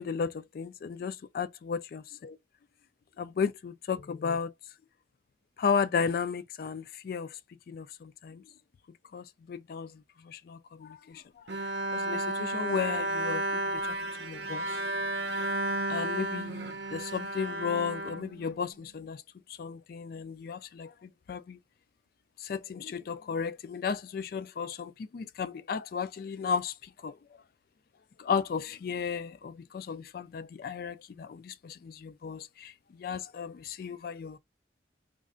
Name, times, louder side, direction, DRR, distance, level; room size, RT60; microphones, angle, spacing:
voice 1, 0.0-2.4 3.2-4.5 5.6-8.4 8.9-11.5 11.9-14.8 15.9-19.2 19.5-21.6 22.4-27.2 28.2-34.4, left 6 dB, 55° left, 0.3 m, -34 dB
Bowed string instrument, 11.5-18.9, right 2 dB, 70° right, 0.6 m, -33 dB
3.2 x 2.5 x 3.7 m
head